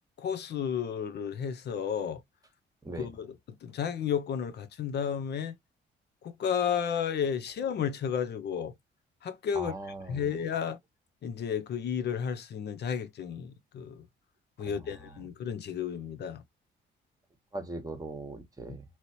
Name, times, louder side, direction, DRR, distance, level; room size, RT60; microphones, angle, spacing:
voice 1, 0.2-2.2 3.0-3.3 3.6-5.5 6.2-8.7 9.2-9.7 10.1-10.8 11.2-14.0 14.6-16.4, left 7 dB, 60° left, 0.6 m, -32 dB
voice 2, 9.5-10.2 14.6-15.3 17.5-18.8, right 2 dB, 15° right, 1.2 m, -40 dB
2.9 x 2.9 x 2.7 m
cardioid pair, 90°, 20 cm